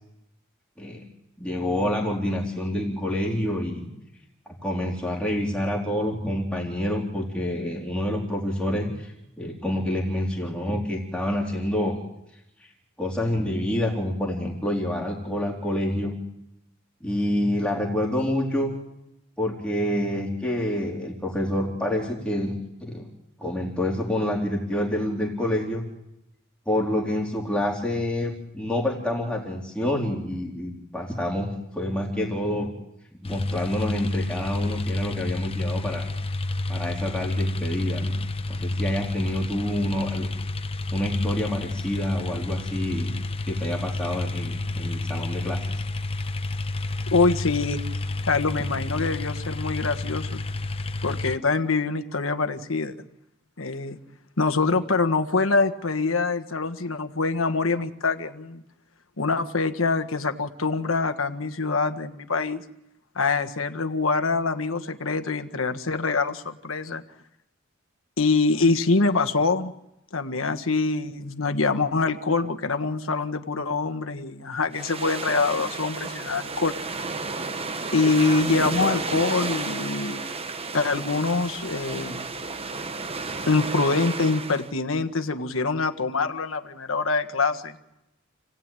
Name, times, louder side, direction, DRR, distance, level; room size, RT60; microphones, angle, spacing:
voice 1, 1.4-3.9 4.5-12.0 13.0-16.1 17.0-18.7 19.4-23.1 23.4-25.8 26.7-32.7 33.2-36.1 36.7-38.1 38.5-40.3 40.9-43.1 43.5-45.7, left 1 dB, 5° left, -3 dB, 3.6 m, -27 dB
tractor plowing, 33.2-51.4, left 2 dB, 30° left, 0.8 m, -30 dB
voice 2, 47.1-47.8 48.3-50.4 51.0-53.0 53.6-54.0 54.4-58.6 59.2-62.6 63.1-67.0 68.2-69.7 70.1-76.7 77.9-80.3 80.7-82.3 83.5-87.8, left 3 dB, 70° left, 8 dB, 1.5 m, -24 dB
sound 1, 74.7-84.7, right 3 dB, 30° right, 1.0 m, -32 dB
29.0 x 18.0 x 9.1 m, 0.89 s
head